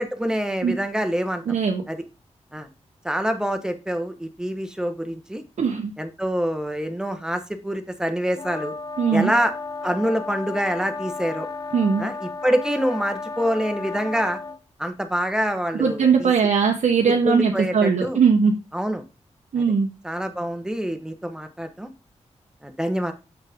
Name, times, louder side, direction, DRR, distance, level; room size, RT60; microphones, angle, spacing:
voice 1, 0.0-1.4 1.9-2.0 2.5-2.7 3.0-5.4 6.0-8.7 9.1-9.5 9.8-11.5 12.0-14.4 14.8-16.3 17.2-18.2 18.7-19.0 19.6-19.7 20.0-21.9 22.6-23.1, equal, 5° right, 7 dB, 1.2 m, -26 dB
voice 2, 1.5-1.8 5.6-5.9 9.0-9.3 11.7-12.0 15.8-18.6 19.5-19.9, right 6 dB, 80° right, 2 dB, 1.0 m, -20 dB
sound 1, 8.4-14.6, left 4 dB, 35° left, 0.7 m, -33 dB
7.3 x 6.3 x 3.6 m, 0.29 s
wide cardioid pair, 90°, 12 cm